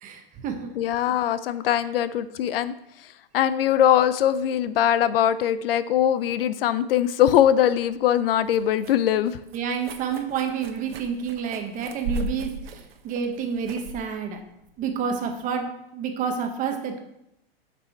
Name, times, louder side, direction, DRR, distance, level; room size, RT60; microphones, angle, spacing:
voice 1, 0.0-0.7 9.5-14.4 14.8-17.0, right 6 dB, 25° right, 5 dB, 1.2 m, -29 dB
voice 2, 0.8-2.7 3.0-9.4, left 10 dB, 70° left, 14 dB, 0.6 m, -22 dB
sound 1, 7.7-15.5, right 2 dB, 80° right, 1.1 m, -38 dB
7.7 x 6.1 x 4.5 m, 0.82 s
hypercardioid pair, 145°, 30 cm